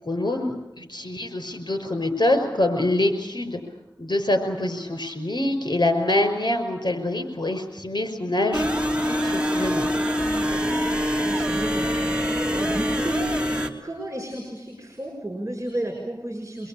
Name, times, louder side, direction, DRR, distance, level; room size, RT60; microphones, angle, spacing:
voice 1, 0.0-3.6 4.0-9.8, left 1 dB, 60° left, 7 dB, 5.6 m, -25 dB
sound 1, 8.5-13.7, equal, 10° right, 3.1 m, -24 dB
voice 2, 10.2-16.7, right 1 dB, 35° right, 2 dB, 6.4 m, -34 dB
25.5 x 22.0 x 8.8 m, 0.97 s
wide cardioid pair, 45°, 8 cm